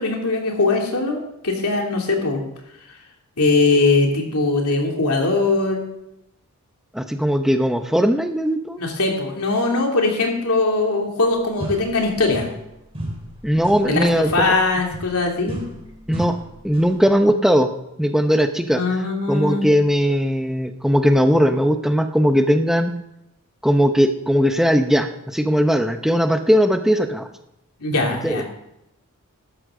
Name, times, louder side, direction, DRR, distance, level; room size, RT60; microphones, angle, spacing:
voice 1, 0.0-2.4 3.4-5.9 8.8-12.5 13.9-14.0 14.3-15.6 18.7-19.6 27.8-28.4, left 3 dB, 85° left, 1 dB, 2.8 m, -20 dB
voice 2, 6.9-8.8 13.4-14.5 16.1-16.3 16.6-17.7 18.0-18.8 19.3-22.9 23.6-27.3 28.2-28.4, equal, ahead, 6 dB, 0.7 m, -18 dB
sound 1, 11.2-11.3 11.6-12.7 12.9-17.1, equal, 25° right, 3.1 m, -34 dB
13.5 x 11.5 x 3.8 m, 0.84 s
head